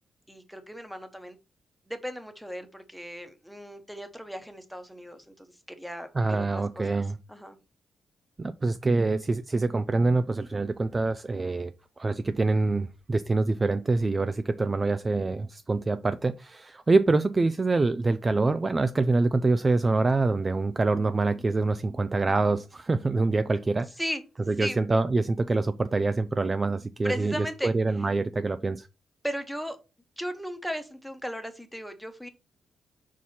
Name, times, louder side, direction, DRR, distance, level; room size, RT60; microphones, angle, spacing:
voice 1, 0.3-1.4 1.9-6.9 7.3-7.6 24.0-24.2 24.6-24.8 27.0-28.1 29.2-29.8 30.2-32.3, equal, ahead, 1.0 m, -36 dB
voice 2, 6.2-7.2 8.4-11.7 12.0-23.9 24.5-28.9, right 3 dB, 25° right, 0.3 m, -25 dB
5.5 x 4.7 x 4.2 m
cardioid pair, 135°, 0 cm